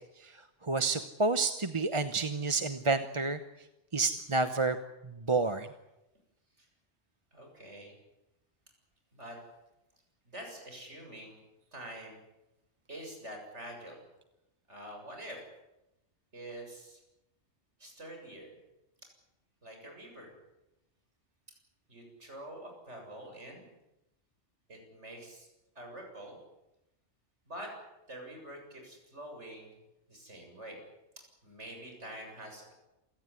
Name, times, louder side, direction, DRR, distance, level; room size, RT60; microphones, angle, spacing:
voice 1, 0.7-3.4 3.9-4.8 5.3-5.7, right 3 dB, 25° right, 10 dB, 1.0 m, -29 dB
voice 2, 7.3-7.9 9.1-9.4 10.2-11.4 11.7-12.2 12.9-14.0 14.7-15.4 16.3-17.0 17.8-18.5 19.6-20.3 21.9-23.6 24.7-25.5 25.8-26.4 27.5-27.7 28.1-29.7 30.1-30.8 31.4-32.7, right 1 dB, 75° right, 2 dB, 7.8 m, -46 dB
27.5 x 17.5 x 9.8 m, 0.93 s
omnidirectional pair, 1.2 m